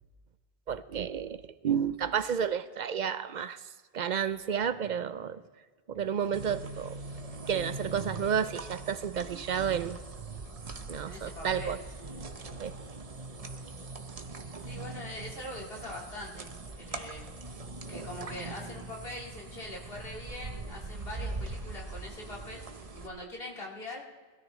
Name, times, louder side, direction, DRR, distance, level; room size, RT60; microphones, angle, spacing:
voice 1, 0.7-3.6 3.9-5.4 5.9-7.0 7.5-10.4 10.9-11.8 12.6-12.8, right 7 dB, 55° right, 0.5 m, -31 dB
sound 1, 6.3-23.1, right 3 dB, 35° right, 0.9 m, -42 dB
voice 2, 11.0-12.2 14.6-17.2 17.9-22.6 22.9-24.0, left 1 dB, 60° left, 2.7 m, -43 dB
21.0 x 13.0 x 3.1 m
omnidirectional pair, 1.1 m